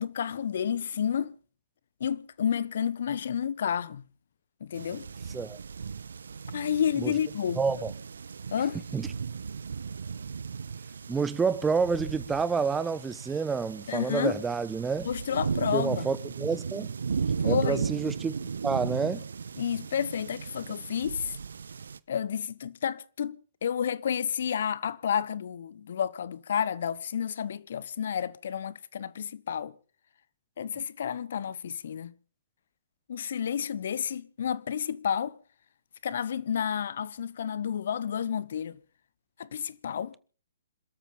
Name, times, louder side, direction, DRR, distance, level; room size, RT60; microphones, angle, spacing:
voice 1, 0.0-1.3 2.0-4.1 4.6-5.1 6.5-7.6 8.5-8.8 13.9-14.4 15.0-16.1 17.4-17.9 19.6-21.4 22.1-23.4 23.6-29.7 30.6-32.1 33.1-35.4 36.0-38.8 39.4-40.1, left 8 dB, 55° left, 1.3 m, -30 dB
sound 1, 4.7-22.0, right 6 dB, 65° right, 0.9 m, -36 dB
voice 2, 7.6-7.9 8.9-9.1 11.1-15.1 15.7-16.9 17.4-18.3 18.6-19.2, right 5 dB, 10° right, 1.1 m, -28 dB
27.5 x 13.5 x 4.0 m
figure-of-eight pair, 125°, 0 cm